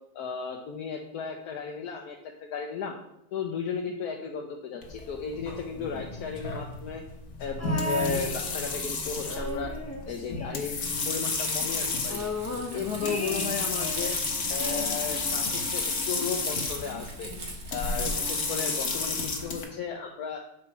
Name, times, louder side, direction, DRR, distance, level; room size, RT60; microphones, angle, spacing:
voice 1, 0.1-3.0 3.3-7.0 7.4-9.7 10.1-10.8 11.0-12.2 12.7-14.2 14.5-17.3 17.7-20.4, left 6 dB, 85° left, 1 dB, 1.3 m, -34 dB
sound 1, 4.8-19.6, left 3 dB, 55° left, 1.4 m, -32 dB
sound 2, 7.6-8.9 9.2-11.1 11.4-11.5 11.8-14.2 14.6-15.8 16.7-16.8, left 1 dB, 20° left, 0.4 m, -36 dB
Crumpling crinkling, 11.2-18.7, right 3 dB, 70° right, 2.0 m, -42 dB
7.4 x 5.1 x 4.4 m, 0.81 s
omnidirectional pair, 1.6 m